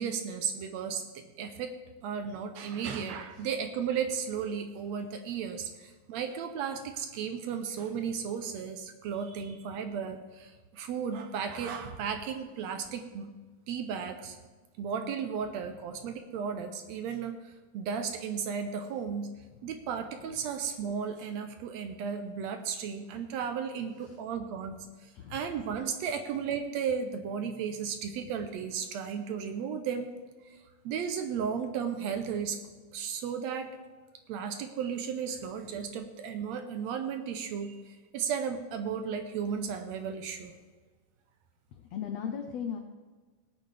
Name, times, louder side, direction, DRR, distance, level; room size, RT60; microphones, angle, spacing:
voice 1, 0.0-1.7 2.0-13.3 13.7-14.4 14.8-19.3 19.6-30.1 30.5-30.6 30.8-32.6 32.9-33.7 34.3-37.8 38.1-40.5, right 7 dB, 80° right, 7 dB, 1.6 m, -34 dB
voice 2, 41.7-42.8, left 7 dB, 75° left, 4 dB, 1.6 m, -37 dB
18.0 x 9.3 x 3.3 m, 1.4 s
omnidirectional pair, 3.7 m